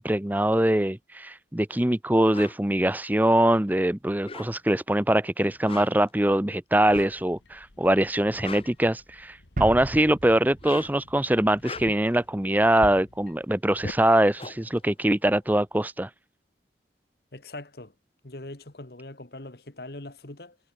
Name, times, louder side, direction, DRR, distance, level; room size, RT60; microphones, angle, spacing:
voice 1, 0.0-16.1, right 1 dB, 10° right, 0.7 m, -23 dB
sound 1, 2.3-2.6 4.1-4.8 5.5-6.1 6.9-7.2 8.2-9.4 10.4-11.1 11.5-12.2 13.7-13.8 14.0-15.7, left 4 dB, 30° left, 1.8 m, -42 dB
sound 2, 6.9-14.0, left 1 dB, 80° left, 1.5 m, -46 dB
sound 3, 9.6-12.2, right 2 dB, 45° right, 0.8 m, -37 dB
voice 2, 17.3-17.9 18.2-20.6, left 2 dB, 55° left, 1.8 m, -41 dB
head